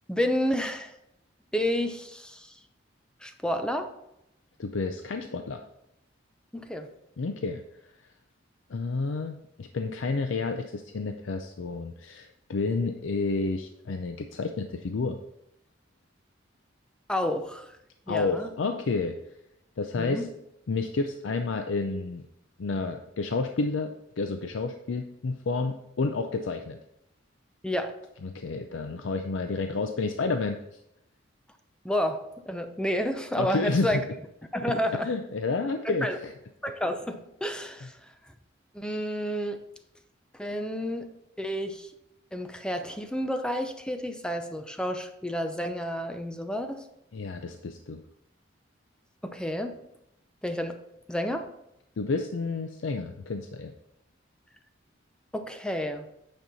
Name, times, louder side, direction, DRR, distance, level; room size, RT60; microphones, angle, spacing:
voice 1, 0.1-0.9 1.5-2.5 3.2-3.9 6.5-6.9 17.1-17.8 18.1-18.5 20.0-20.3 27.6-27.9 31.8-32.2 32.5-34.0 34.5-35.1 35.8-36.2 36.6-38.1 38.7-39.6 40.3-41.1 41.4-41.9 42.3-46.8 49.2-49.8 50.4-50.8 51.1-51.5 55.3-56.1, equal, 5° left, 7 dB, 0.6 m, -30 dB
voice 2, 4.6-5.6 7.2-7.6 8.7-15.2 18.1-19.2 19.8-20.3 20.7-22.2 22.6-26.8 28.2-30.6 33.4-34.0 35.0-36.3 47.1-48.0 52.0-53.7, left 3 dB, 80° left, 6 dB, 0.5 m, -30 dB
9.0 x 5.4 x 4.1 m, 0.81 s
head